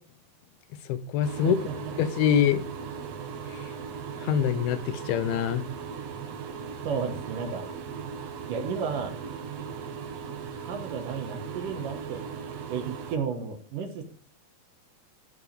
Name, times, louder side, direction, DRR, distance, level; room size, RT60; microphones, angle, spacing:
voice 1, 0.9-1.6 2.0-2.6 4.2-5.6, left 9 dB, 85° left, 2.6 m, -24 dB
sound 1, 1.2-13.2, right 6 dB, 85° right, 1.4 m, -38 dB
voice 2, 1.4-1.8 6.8-7.7 8.5-9.2 10.6-12.2 12.7-14.0, right 6 dB, 65° right, 2.5 m, -33 dB
14.0 x 4.8 x 5.1 m
omnidirectional pair, 4.5 m